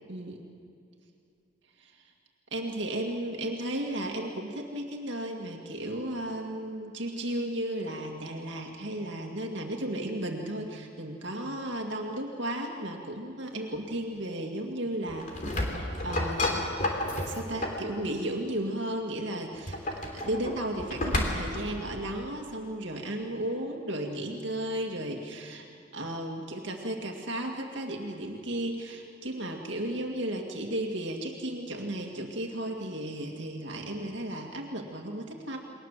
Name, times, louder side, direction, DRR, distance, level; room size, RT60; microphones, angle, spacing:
voice 1, 0.1-0.4 1.8-2.0 2.5-16.7 17.2-19.8 20.1-25.7 25.9-35.6, right 1 dB, 60° right, 1 dB, 2.2 m, -34 dB
sound 1, 15.1-17.9 19.5-21.7, left 1 dB, 40° left, 3.3 m, -31 dB
29.0 x 21.5 x 7.5 m, 2.4 s
head